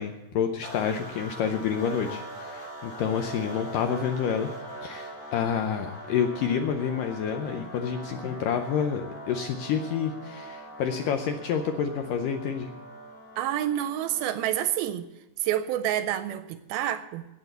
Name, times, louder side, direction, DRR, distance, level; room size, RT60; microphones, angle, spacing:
voice 1, 0.0-4.5 4.8-12.7, left 7 dB, 80° left, 6 dB, 2.0 m, -28 dB
sound 1, 0.6-14.8, right 1 dB, 25° left, 3.5 m, -42 dB
voice 2, 13.4-15.1 15.4-17.3, right 11 dB, 80° right, 12 dB, 2.3 m, -28 dB
17.5 x 6.1 x 8.0 m, 1.0 s
omnidirectional pair, 4.6 m